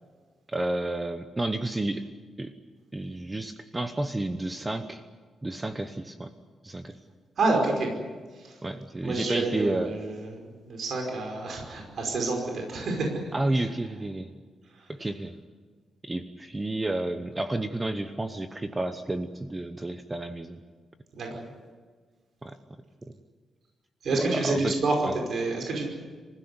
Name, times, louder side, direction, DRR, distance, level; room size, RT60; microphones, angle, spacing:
voice 1, 0.5-2.1 2.4-2.5 2.9-5.0 5.4-6.3 6.6-7.0 8.6-9.9 13.3-14.3 14.9-15.3 16.0-20.6 22.4-22.6 23.0-23.1 24.1-24.8, right 2 dB, 15° right, 8 dB, 0.9 m, -31 dB
voice 2, 7.4-7.9 8.3-8.6 9.0-13.2 13.5-13.7 14.7-14.9 21.1-21.4 24.0-25.8, right 3 dB, 55° right, 1 dB, 5.2 m, -28 dB
26.0 x 16.0 x 9.7 m, 1.5 s
wide cardioid pair, 155°, 0 cm